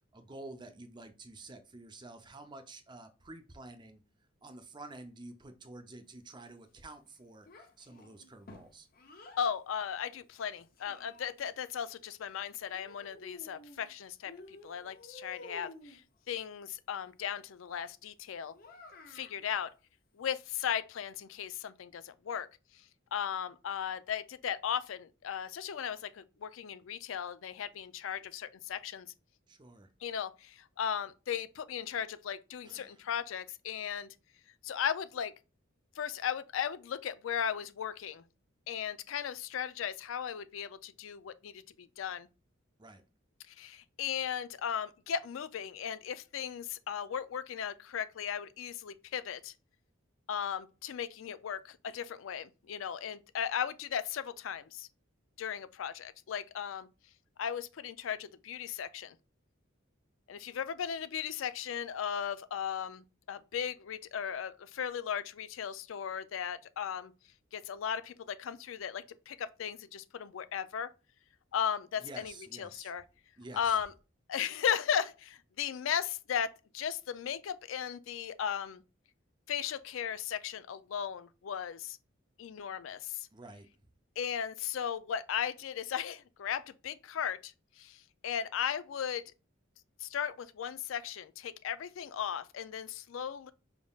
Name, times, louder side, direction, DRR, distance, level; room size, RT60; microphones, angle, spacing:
voice 1, 0.1-4.0 4.4-8.9 29.5-29.9 32.6-33.0 42.8-43.0 72.0-72.9 73.4-73.8 83.3-83.7, right 2 dB, 20° right, 0.5 m, -50 dB
Child speech kid speaking, 7.5-9.4 10.4-11.6 12.7-13.9 14.2-16.0 18.5-19.4, left 2 dB, 45° left, 0.7 m, -52 dB
voice 2, 9.4-16.0 16.3-18.5 19.1-19.7 20.2-22.5 23.1-29.1 30.0-34.1 34.6-35.3 36.0-38.2 38.7-42.3 43.5-49.5 50.3-54.9 55.4-56.9 57.4-59.2 60.3-67.1 67.5-70.9 71.5-73.0 73.5-73.9 74.3-78.8 79.5-82.0 82.4-83.3 84.2-89.2 90.0-93.5, left 8 dB, 75° left, 0.4 m, -36 dB
5.1 x 3.5 x 2.3 m
head